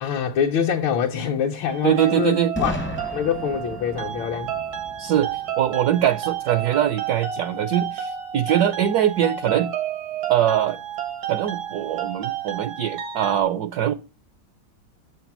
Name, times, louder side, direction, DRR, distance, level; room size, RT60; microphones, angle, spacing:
voice 1, 0.0-2.8 3.1-4.5, left 8 dB, 80° left, 1.5 m, -25 dB
sound 1, 1.7-13.4, right 9 dB, 90° right, 2.2 m, -31 dB
voice 2, 1.8-2.5 5.0-9.7 10.3-10.8 11.3-13.9, right 10 dB, 70° right, 0.9 m, -22 dB
Boom, 2.5-6.4, left 1 dB, 15° left, 0.3 m, -34 dB
7.2 x 6.1 x 5.9 m
omnidirectional pair, 2.1 m